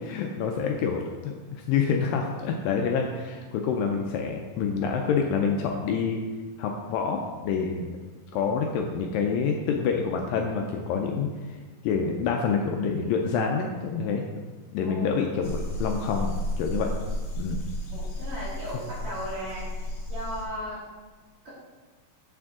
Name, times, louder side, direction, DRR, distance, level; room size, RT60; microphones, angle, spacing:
voice 1, 0.0-6.2 6.6-7.9 8.3-11.6 11.8-14.2 14.7-16.9 17.4-17.6, left 6 dB, 80° left, 2 dB, 2.1 m, -27 dB
sound 1, 15.4-20.5, left 1 dB, 55° left, 2.4 m, -33 dB
voice 2, 17.9-20.8 21.4-21.5, equal, 45° right, -8 dB, 2.1 m, -36 dB
7.3 x 6.0 x 3.6 m, 1.3 s
omnidirectional pair, 4.3 m